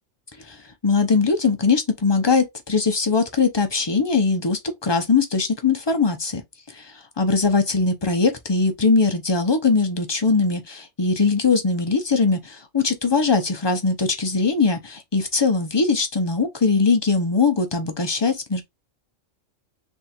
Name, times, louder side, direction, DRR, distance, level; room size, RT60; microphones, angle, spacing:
voice 1, 0.8-6.4 6.7-18.6, left 4 dB, 35° left, 0.4 m, -21 dB
3.6 x 2.4 x 4.2 m
omnidirectional pair, 1.3 m